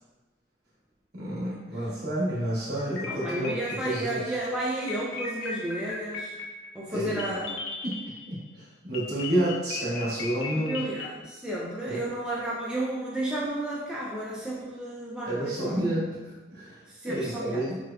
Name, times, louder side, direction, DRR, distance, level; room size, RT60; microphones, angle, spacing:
voice 1, 1.1-3.5 3.8-4.2 6.9-7.2 7.8-8.0 8.3-10.8 11.8-12.0 15.3-17.8, right 1 dB, 55° right, -8 dB, 1.2 m, -30 dB
sound 1, 2.8-4.2 4.9-8.5 8.9-11.1, left 4 dB, 85° left, 0.6 m, -37 dB
voice 2, 3.1-6.3 6.7-7.6 10.5-15.8 16.9-17.6, right 1 dB, 5° right, -6 dB, 0.3 m, -32 dB
6.1 x 2.3 x 2.3 m, 1.2 s
head